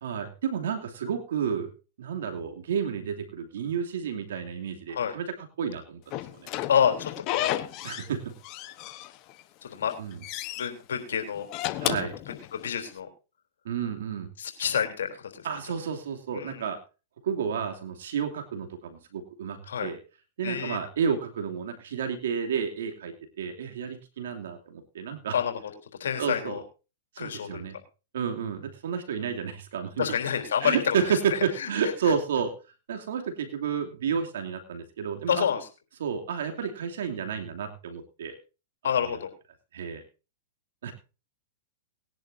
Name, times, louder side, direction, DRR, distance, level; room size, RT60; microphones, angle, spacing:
voice 1, 0.0-1.7 2.0-5.3 5.6-6.1 6.4-6.5 7.8-8.3 10.0-10.2 11.8-12.1 13.6-14.3 15.4-16.8 17.2-20.0 20.4-25.3 26.2-26.6 27.1-27.8 28.1-30.1 30.6-32.5 32.9-35.4 36.0-38.4 39.0-39.2 39.7-40.0 40.8-40.9, right 7 dB, 75° right, 5 dB, 2.8 m, -31 dB
Slam / Squeak, 6.1-8.1 8.4-9.4 9.8-10.7 11.4-12.9, left 15 dB, 40° left, 1.1 m, -33 dB
voice 2, 6.7-7.6 9.6-9.9 10.6-11.5 12.3-13.1 14.4-15.5 16.3-16.6 19.7-19.9 20.4-20.8 25.3-25.6 26.0-26.6 27.2-27.7 30.0-31.0 31.3-31.7 32.0-32.1 35.3-35.6 38.8-39.3, left 8 dB, 80° left, 4 dB, 3.6 m, -28 dB
20.0 x 10.5 x 2.7 m, 0.32 s
hypercardioid pair, 125°, 0 cm